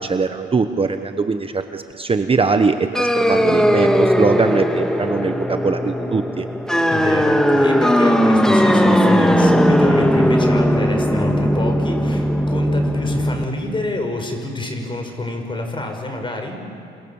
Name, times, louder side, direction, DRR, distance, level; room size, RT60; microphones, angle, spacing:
voice 1, 0.0-6.5, right 4 dB, 30° right, 7 dB, 1.2 m, -21 dB
sound 1, 2.9-13.4, equal, 5° left, 1.8 m, -17 dB
voice 2, 6.9-16.7, left 2 dB, 25° left, 4 dB, 5.7 m, -27 dB
28.0 x 27.0 x 7.3 m, 2.4 s
cardioid pair, 90°, 20 cm